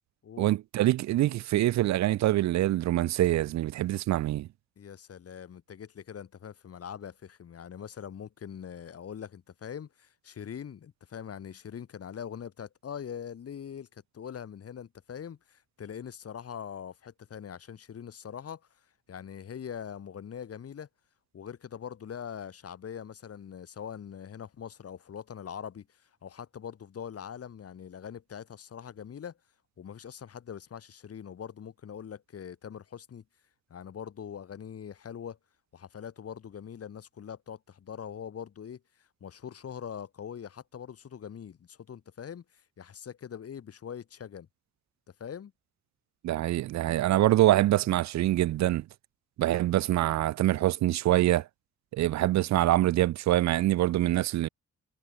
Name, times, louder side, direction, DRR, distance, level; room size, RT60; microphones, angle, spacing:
voice 1, 0.4-4.5 46.2-48.8 49.4-51.5 51.9-54.5, right 14 dB, 65° right, 0.4 m, -25 dB
voice 2, 4.8-18.6 19.1-20.9 21.3-25.9 26.2-29.3 29.8-33.2 33.7-35.4 35.7-38.8 39.2-42.4 42.8-44.5 45.2-45.5, left 8 dB, 50° left, 4.3 m, -42 dB
cardioid pair, 140°, 30 cm